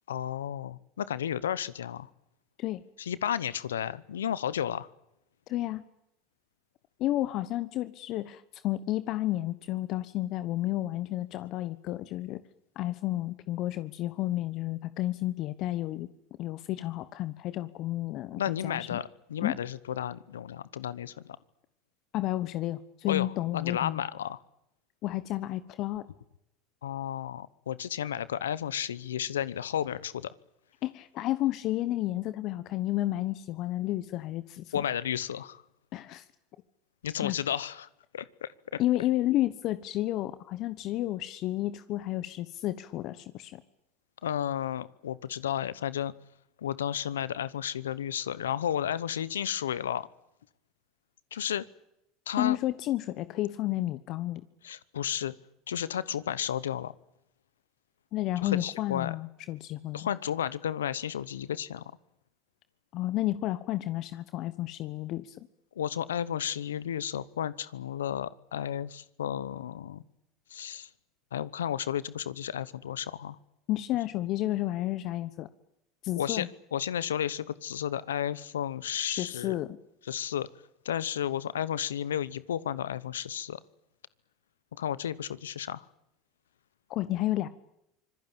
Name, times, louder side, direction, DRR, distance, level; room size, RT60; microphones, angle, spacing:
voice 1, 0.1-2.1 3.0-4.9 18.3-21.4 23.1-24.4 26.8-30.3 34.7-35.6 37.0-37.9 38.1-38.8 44.2-46.1 46.6-50.1 51.3-51.7 52.3-52.6 54.6-55.3 55.7-56.9 58.4-59.1 59.9-61.8 65.8-70.0 70.5-70.9 71.3-73.4 76.2-79.5 80.1-80.5 80.8-83.6 84.8-85.8, left 10 dB, 90° left, 19 dB, 0.9 m, -33 dB
voice 2, 5.5-5.8 7.0-12.4 12.7-16.1 16.4-19.0 19.4-19.6 22.1-24.0 25.0-26.1 30.8-34.8 35.9-36.2 37.2-37.3 38.8-43.6 52.4-54.4 58.1-60.1 62.9-65.5 73.7-75.5 76.0-76.5 79.0-79.8 86.9-87.5, left 15 dB, 55° left, 14 dB, 1.2 m, -31 dB
25.5 x 20.5 x 8.9 m, 0.83 s
hypercardioid pair, 85°, 0 cm